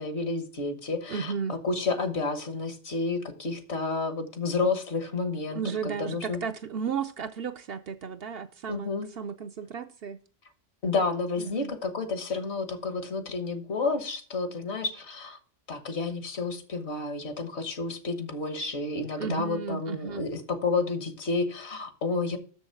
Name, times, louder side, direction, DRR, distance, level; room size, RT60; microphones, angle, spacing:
voice 1, 0.0-6.4 8.7-9.1 10.8-15.4 15.7-22.4, left 3 dB, 65° left, 1.5 m, -30 dB
voice 2, 1.1-1.6 5.5-10.2 11.4-11.7 19.2-20.2, right 6 dB, 60° right, 0.7 m, -34 dB
6.9 x 6.3 x 5.7 m
omnidirectional pair, 1.2 m